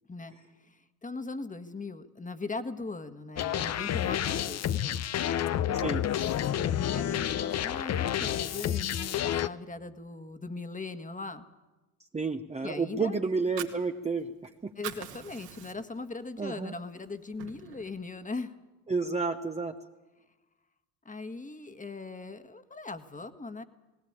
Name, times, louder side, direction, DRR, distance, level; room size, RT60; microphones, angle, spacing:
voice 1, 0.6-5.0 6.6-11.5 12.6-13.2 14.7-18.5 21.0-23.6, left 3 dB, 15° left, 10 dB, 1.6 m, -40 dB
sound 1, 3.4-9.5, left 10 dB, 35° left, 0.8 m, -29 dB
voice 2, 12.1-14.7 16.4-16.7 18.9-19.7, right 4 dB, 15° right, 5 dB, 1.0 m, -31 dB
Fire, 13.3-14.5 14.7-16.1 16.5-16.6 17.0-18.0, right 11 dB, 65° right, 2.3 m, -42 dB
18.5 x 18.0 x 8.8 m, 1.1 s
hypercardioid pair, 70°, 46 cm